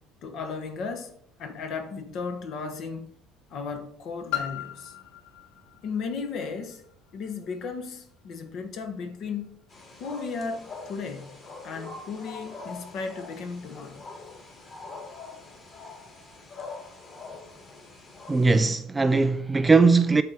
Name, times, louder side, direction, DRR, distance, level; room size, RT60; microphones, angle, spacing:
voice 1, 0.2-3.1 3.5-4.9 5.8-6.8 7.1-9.6 10.0-14.0, left 5 dB, 45° left, 1.2 m, -35 dB
Piano, 4.3-9.7 10.5-10.6, left 10 dB, 85° left, 1.8 m, -39 dB
sound 1, 9.7-18.7, left 3 dB, 25° left, 2.5 m, -44 dB
voice 2, 18.3-20.2, right 4 dB, 10° right, 0.4 m, -20 dB
8.3 x 6.9 x 4.4 m
cardioid pair, 165°, 0 cm